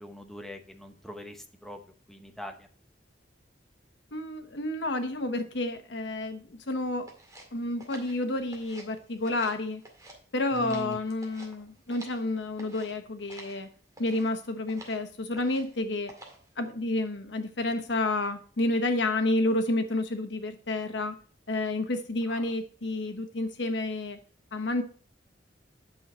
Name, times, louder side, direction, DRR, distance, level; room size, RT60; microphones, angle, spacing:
voice 1, 0.0-1.8 2.1-2.7 10.5-11.0 22.3-22.4, left 1 dB, ahead, 5 dB, 0.9 m, -41 dB
voice 2, 4.1-7.1 7.5-9.8 10.3-13.7 14.0-16.1 16.6-21.1 21.5-24.2 24.5-24.8, left 2 dB, 75° left, 7 dB, 1.2 m, -30 dB
sound 1, 7.1-8.9 9.2-10.2 10.5-12.2 12.6-12.9 13.3-13.6 13.9-14.3 14.7-15.0 15.3-15.7 16.1-16.5, right 2 dB, 20° right, 2.1 m, -49 dB
8.7 x 6.4 x 4.2 m, 0.42 s
head